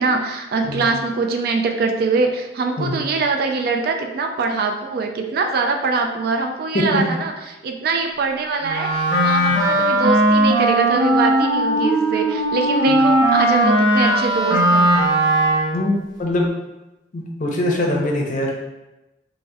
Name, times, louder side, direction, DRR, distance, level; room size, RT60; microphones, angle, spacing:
voice 1, 0.0-14.9, right 4 dB, 60° right, 4 dB, 0.3 m, -23 dB
voice 2, 6.7-7.1 12.9-13.0 15.7-15.9 16.2-16.5 17.1-18.5, left 1 dB, 45° left, -1 dB, 0.5 m, -22 dB
Wind instrument woodwind instrument, 8.6-15.9, right 1 dB, 25° right, 0.8 m, -18 dB
3.3 x 2.1 x 2.6 m, 0.98 s
head